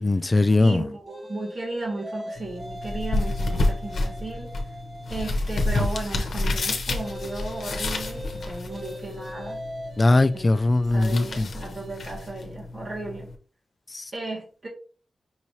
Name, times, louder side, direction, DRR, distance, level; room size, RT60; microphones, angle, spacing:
voice 1, 0.0-0.9 10.0-11.5 13.9-14.1, left 2 dB, 35° left, 0.3 m, -20 dB
voice 2, 0.6-4.5 5.1-9.6 10.3-10.5 10.9-13.3 14.1-14.7, right 2 dB, 50° right, 1.7 m, -35 dB
sound 1, 1.1-5.5 6.9-12.3, equal, 35° right, 0.7 m, -41 dB
sound 2, 2.4-13.4, left 2 dB, 75° left, 0.8 m, -30 dB
5.7 x 3.0 x 2.7 m
cardioid pair, 65°, 0 cm